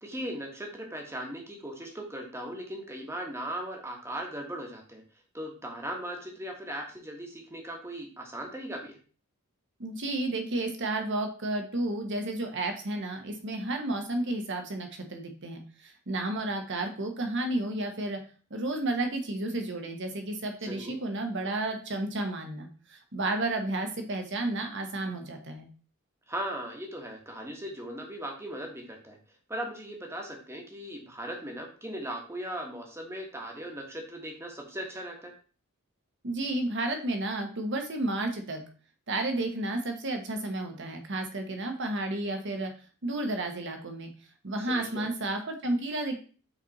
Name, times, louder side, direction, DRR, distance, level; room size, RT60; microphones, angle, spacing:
voice 1, 0.0-5.0 5.3-9.0 20.6-21.0 26.3-29.2 29.5-35.3 44.6-45.1, right 1 dB, 10° right, 1 dB, 1.3 m, -38 dB
voice 2, 9.8-18.2 18.5-25.7 36.2-38.6 39.1-42.7 43.0-44.1 44.4-46.2, right 2 dB, 55° right, 5 dB, 1.2 m, -32 dB
5.9 x 4.3 x 4.1 m, 0.39 s
head